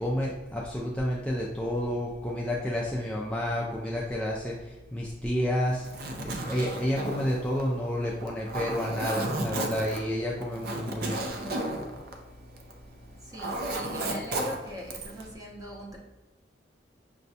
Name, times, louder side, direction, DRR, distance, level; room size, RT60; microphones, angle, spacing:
voice 1, 0.0-11.2, equal, 5° left, -4 dB, 0.3 m, -30 dB
Zipper (clothing), 5.7-12.8 13.1-15.3, right 2 dB, 55° right, 0.5 m, -34 dB
voice 2, 13.2-16.0, equal, 20° right, -2 dB, 0.7 m, -41 dB
5.9 x 2.2 x 2.7 m, 1.1 s
head